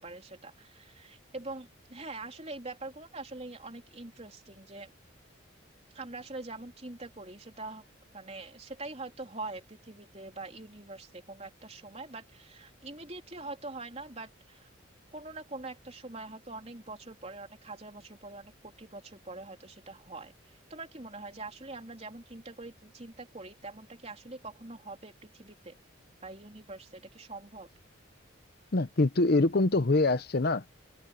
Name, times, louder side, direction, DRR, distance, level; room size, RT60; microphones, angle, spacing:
voice 1, 0.0-4.9 5.9-7.8 8.1-14.7 15.1-25.8 26.2-27.7, right 2 dB, 30° right, 3.5 m, -44 dB
voice 2, 28.7-30.7, left 2 dB, 50° left, 0.8 m, -24 dB
head